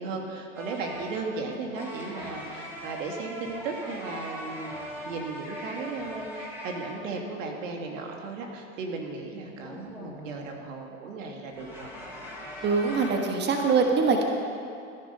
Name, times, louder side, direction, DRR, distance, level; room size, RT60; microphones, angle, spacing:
voice 1, 0.0-4.8 5.1-11.9, right 3 dB, 70° right, 2 dB, 2.3 m, -36 dB
sound 1, 0.5-7.0 9.6-10.6 11.5-13.1, equal, 5° right, 3.6 m, -40 dB
voice 2, 12.6-14.2, right 4 dB, 25° right, 3 dB, 1.5 m, -23 dB
15.0 x 10.5 x 5.6 m, 2.5 s
hypercardioid pair, 105°, 40 cm